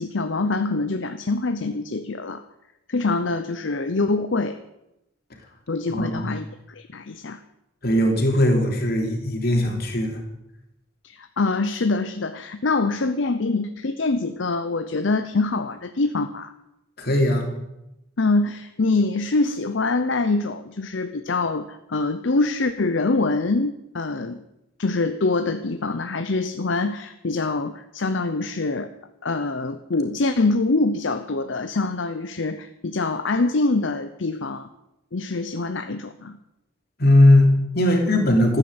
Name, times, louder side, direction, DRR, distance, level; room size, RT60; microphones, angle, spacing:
voice 1, 0.0-2.4 2.9-4.6 5.7-7.4 11.0-16.5 18.2-24.4 24.8-28.9 29.2-34.7 35.1-36.4, left 3 dB, 65° left, 9 dB, 0.7 m, -24 dB
voice 2, 5.9-6.3 7.8-10.2 17.0-17.4 37.0-38.6, left 1 dB, 50° left, 2 dB, 3.1 m, -19 dB
14.5 x 9.9 x 7.9 m, 0.90 s
head